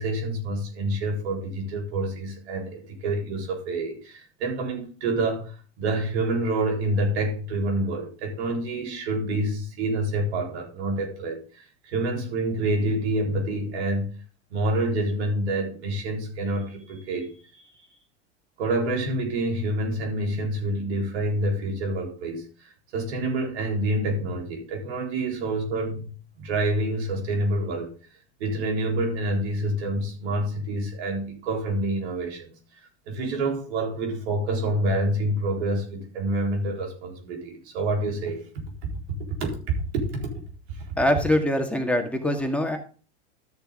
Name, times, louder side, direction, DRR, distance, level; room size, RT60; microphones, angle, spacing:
voice 1, 0.0-14.1 14.5-17.6 18.6-22.4 22.9-27.9 28.4-32.5 33.1-38.5 39.4-39.5 40.1-40.3, right 1 dB, 70° right, 1 dB, 4.1 m, -27 dB
voice 2, 41.0-42.8, left 1 dB, 5° left, 4 dB, 2.1 m, -23 dB
13.0 x 6.8 x 3.8 m, 0.37 s
hypercardioid pair, 105°, 34 cm